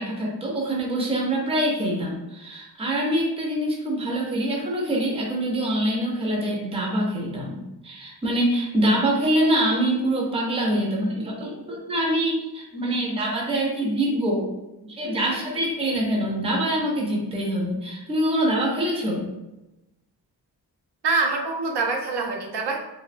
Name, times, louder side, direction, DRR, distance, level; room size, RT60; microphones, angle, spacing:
voice 1, 0.0-7.6 7.8-14.5 14.9-19.3, right 1 dB, 15° right, -2 dB, 0.4 m, -25 dB
voice 2, 21.0-22.8, right 3 dB, 80° right, 1 dB, 0.5 m, -25 dB
2.8 x 2.0 x 2.4 m, 0.98 s
wide cardioid pair, 155°, 40 cm